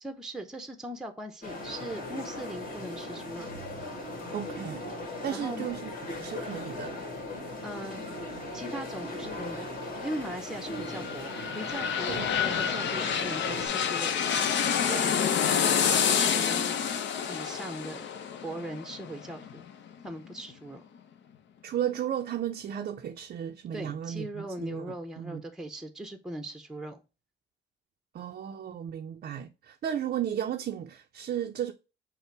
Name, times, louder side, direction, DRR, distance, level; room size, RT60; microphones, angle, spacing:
voice 1, 0.0-3.5 5.3-5.7 7.6-8.0 8.5-14.2 14.8-16.8 17.3-18.1 18.4-19.6 20.0-20.8 23.7-27.0, right 1 dB, 5° right, 0.7 m, -39 dB
sound 1, 1.4-13.7, left 2 dB, 45° left, 1.8 m, -38 dB
voice 2, 4.3-4.8 5.2-5.9 6.2-7.0 12.1-12.3 21.6-25.4 28.1-31.7, right 10 dB, 50° right, 0.4 m, -34 dB
sound 2, 10.5-20.1 20.5-20.6, left 8 dB, 65° left, 0.6 m, -28 dB
5.5 x 2.1 x 4.4 m
cardioid pair, 90°, 20 cm